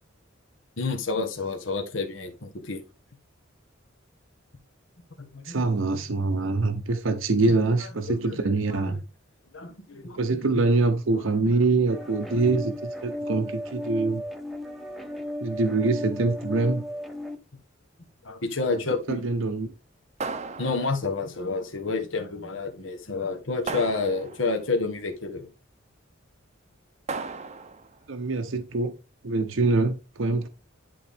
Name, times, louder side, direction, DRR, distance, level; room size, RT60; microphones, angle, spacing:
voice 1, 0.8-2.8 5.2-5.6 7.5-7.6 8.1-8.4 8.7-9.0 9.5-10.7 11.5-11.6 18.2-19.2 20.6-25.5, left 3 dB, 70° left, 1.2 m, -30 dB
voice 2, 5.4-9.0 10.2-14.2 15.4-16.8 19.1-19.7 28.1-28.9 29.2-30.5, right 3 dB, 75° right, 0.7 m, -24 dB
sound 1, 11.9-17.4, left 1 dB, ahead, 0.9 m, -35 dB
sound 2, 20.2-21.3 23.7-24.6 27.1-27.9, right 4 dB, 35° right, 0.6 m, -35 dB
10.5 x 3.9 x 3.4 m
head